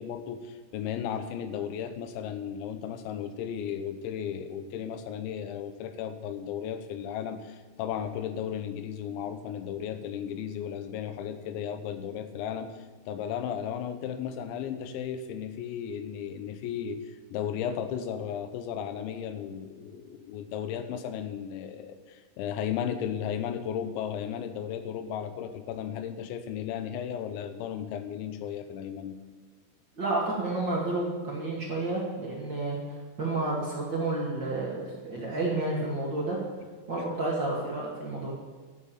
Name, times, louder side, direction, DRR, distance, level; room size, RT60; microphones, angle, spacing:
voice 1, 0.0-17.0 17.3-29.2 37.0-37.1, left 8 dB, 75° left, 9 dB, 2.9 m, -35 dB
voice 2, 29.9-32.8 33.2-36.4 36.9-38.3, right 2 dB, 50° right, -4 dB, 1.3 m, -30 dB
12.0 x 7.2 x 8.8 m, 1.4 s
omnidirectional pair, 5.8 m